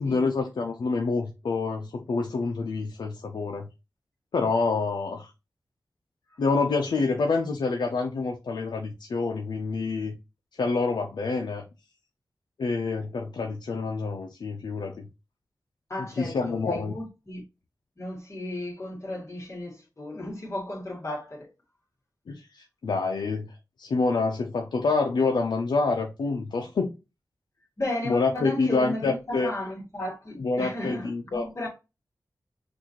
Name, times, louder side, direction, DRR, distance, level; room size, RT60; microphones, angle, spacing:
voice 1, 0.0-3.7 4.3-5.3 6.4-10.1 10.5-11.6 12.6-15.1 16.0-17.0 22.3-26.9 28.0-29.5 30.4-31.7, left 4 dB, 90° left, 0.7 m, -27 dB
voice 2, 15.9-17.4 18.0-21.5 27.8-31.7, left 1 dB, 40° left, 2.0 m, -34 dB
6.1 x 2.7 x 3.0 m
wide cardioid pair, 80°, 7 cm